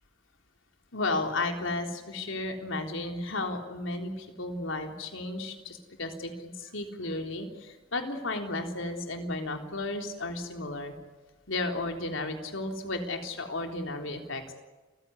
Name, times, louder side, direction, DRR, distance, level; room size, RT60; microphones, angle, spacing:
voice 1, 0.9-10.9 11.5-14.4, left 2 dB, 70° left, 4 dB, 3.7 m, -33 dB
29.5 x 15.5 x 9.8 m, 1.2 s
head